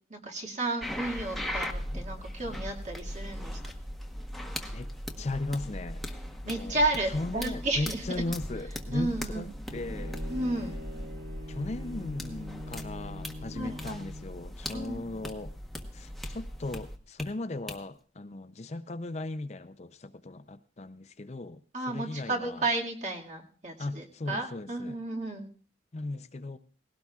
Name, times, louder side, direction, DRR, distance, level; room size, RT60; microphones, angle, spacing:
voice 1, 0.1-3.6 6.5-8.0 8.9-9.5 10.3-10.7 13.5-14.0 14.7-15.0 21.7-25.5, right 2 dB, 40° right, 0 dB, 2.1 m, -32 dB
sound 1, 0.8-17.2 17.7-17.8, equal, ahead, 1.0 m, -39 dB
voice 2, 5.2-6.0 6.4-6.8 7.1-10.2 11.5-15.5 15.9-21.6 21.9-22.6 23.8-25.0 25.9-26.6, left 2 dB, 40° left, 11 dB, 0.5 m, -37 dB
Bowed string instrument, 9.7-14.4, left 1 dB, 70° right, 3.9 m, -43 dB
19.0 x 16.5 x 2.4 m, 0.41 s
head